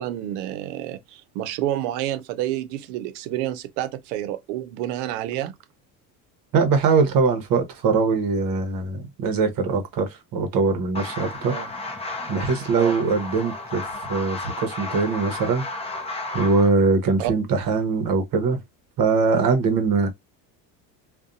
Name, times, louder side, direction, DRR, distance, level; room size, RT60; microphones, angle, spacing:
voice 1, 0.0-5.5 11.5-11.7 12.7-13.0 17.2-17.3, right 13 dB, 80° right, 0.6 m, -29 dB
voice 2, 6.5-11.5 12.3-15.6 16.3-18.6 19.0-20.1, right 4 dB, 45° right, 0.9 m, -22 dB
sound 1, 10.9-16.7, left 2 dB, 15° left, 0.5 m, -33 dB
2.6 x 2.2 x 2.4 m
supercardioid pair, 100°, 48 cm